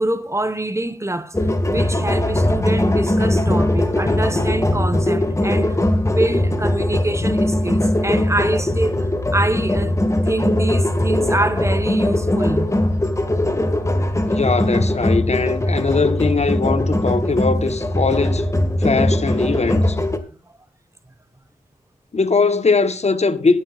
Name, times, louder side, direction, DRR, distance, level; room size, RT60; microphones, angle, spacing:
voice 1, 0.0-5.8 6.1-12.7 14.0-14.1, right 2 dB, 20° right, 1.0 m, -25 dB
sound 1, 1.3-20.2, left 1 dB, 20° left, 1.7 m, -20 dB
voice 2, 14.3-18.4 18.8-20.0 22.1-23.6, left 4 dB, 50° left, 1.0 m, -20 dB
19.5 x 10.0 x 2.4 m
wide cardioid pair, 65°, 14 cm